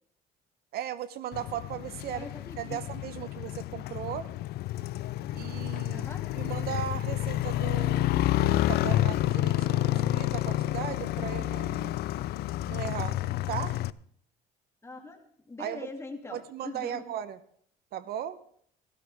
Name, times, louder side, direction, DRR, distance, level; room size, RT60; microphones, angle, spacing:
voice 1, 0.7-2.3 2.6-4.3 5.3-6.0 6.4-8.1 8.4-12.0 12.7-13.2 13.5-13.8 15.6-15.9 16.3-17.4 17.9-18.4, right 10 dB, 70° right, 14 dB, 0.8 m, -37 dB
Motorcycle, 1.3-13.9, left 15 dB, 70° left, 0.4 m, -29 dB
voice 2, 2.1-2.8 3.2-3.3 5.9-6.2 14.8-15.2 15.5-17.0, left 3 dB, 15° left, 3 dB, 2.4 m, -42 dB
16.0 x 13.5 x 3.4 m, 0.63 s
cardioid pair, 110°, 17 cm